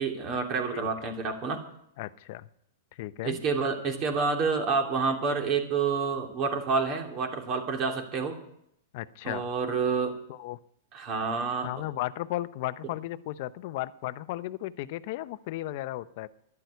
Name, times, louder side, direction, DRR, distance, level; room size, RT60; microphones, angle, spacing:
voice 1, 0.0-1.7 3.2-8.4 9.2-10.2 10.9-11.7, right 5 dB, 35° right, 3 dB, 3.0 m, -28 dB
voice 2, 2.0-2.5 3.0-3.4 8.9-9.5 10.3-10.6 11.6-16.3, left 16 dB, 55° left, 15 dB, 0.7 m, -35 dB
11.5 x 11.0 x 8.1 m, 0.72 s
hypercardioid pair, 125°, 0 cm